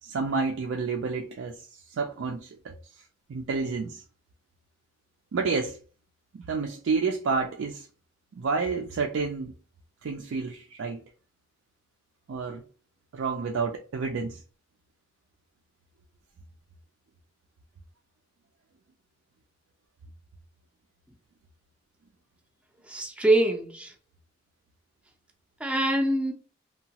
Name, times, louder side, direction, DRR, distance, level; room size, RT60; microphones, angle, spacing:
voice 1, 0.0-2.7 3.3-4.0 5.3-5.8 6.3-7.9 8.3-9.5 10.0-11.0 12.3-12.6 13.1-14.4, right 4 dB, 90° right, 0.4 m, -30 dB
voice 2, 22.8-23.9 25.6-26.3, right 1 dB, 5° right, 0.4 m, -24 dB
2.8 x 2.2 x 2.8 m
head